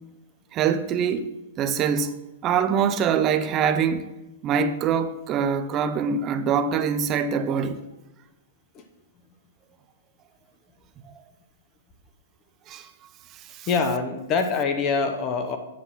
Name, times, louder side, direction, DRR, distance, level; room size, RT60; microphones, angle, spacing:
voice 1, 0.5-1.3 1.6-2.1 2.4-4.1 4.4-7.8 11.0-11.1 12.7-12.9 13.5-13.7, right 7 dB, 20° right, 0.4 m, -24 dB
voice 2, 13.7-15.6, left 5 dB, 20° left, 0.8 m, -24 dB
8.1 x 6.2 x 5.6 m
hypercardioid pair, 170°, 0 cm